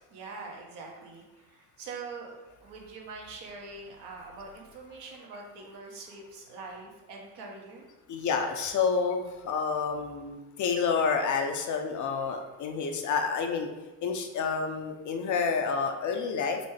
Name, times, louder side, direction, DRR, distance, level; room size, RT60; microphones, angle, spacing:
voice 1, 0.1-7.9, right 4 dB, 70° right, -1 dB, 1.1 m, -44 dB
voice 2, 8.1-13.7 14.0-16.6, left 5 dB, 45° left, 4 dB, 0.6 m, -29 dB
4.0 x 3.3 x 3.3 m, 1.1 s
supercardioid pair, 85°, 41 cm